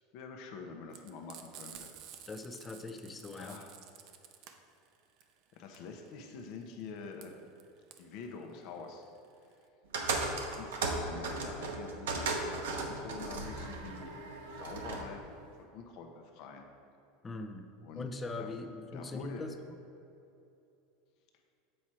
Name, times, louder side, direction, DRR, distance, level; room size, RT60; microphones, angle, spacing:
voice 1, 0.0-1.9 3.3-3.7 5.5-7.4 8.0-9.0 10.4-14.1 14.5-16.7 17.8-18.1 18.4-18.6 18.9-19.5, left 5 dB, 60° left, 3 dB, 0.8 m, -46 dB
Frying (food), 0.9-9.7, right 9 dB, 55° right, 0.6 m, -52 dB
voice 2, 2.3-3.6 17.2-17.7 17.9-19.7, left 3 dB, 20° left, 7 dB, 0.5 m, -41 dB
sound 1, 9.9-15.1, right 3 dB, 90° right, 0.9 m, -36 dB
7.4 x 4.7 x 4.3 m, 2.7 s
supercardioid pair, 115°, 0 cm